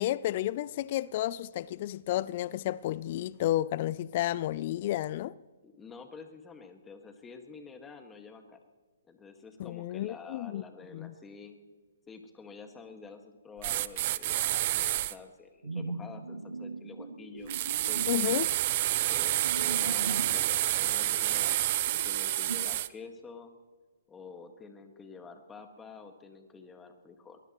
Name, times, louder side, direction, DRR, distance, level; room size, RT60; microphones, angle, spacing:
voice 1, 0.0-5.3 9.6-10.6 10.9-11.1 18.1-18.5, left 14 dB, 40° left, 0.4 m, -31 dB
voice 2, 5.6-8.6 9.1-11.6 12.1-18.4 19.0-21.6 21.9-23.5 24.1-27.4, left 4 dB, 10° left, 1.8 m, -48 dB
sound 1, 13.6-15.1 17.5-22.9, right 15 dB, 40° right, 0.6 m, -29 dB
sound 2, 15.6-20.4 20.8-22.6, right 3 dB, 90° right, 2.0 m, -40 dB
23.0 x 19.5 x 3.1 m
hypercardioid pair, 135°, 0 cm